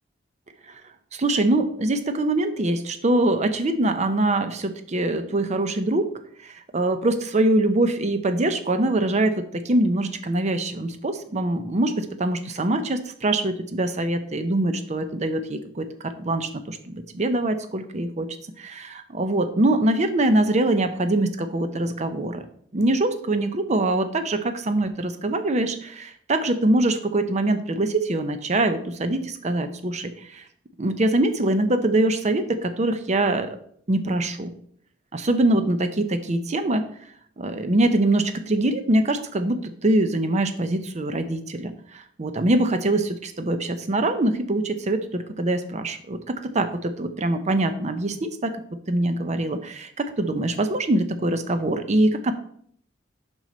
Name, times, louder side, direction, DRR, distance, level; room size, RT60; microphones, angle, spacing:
voice 1, 1.1-6.1 6.4-18.3 18.6-22.4 22.7-30.4 30.8-33.6 33.9-34.5 35.1-36.9 37.4-48.6 48.9-52.3, right 1 dB, 35° right, 9 dB, 0.6 m, -23 dB
6.0 x 5.4 x 4.2 m, 0.63 s
head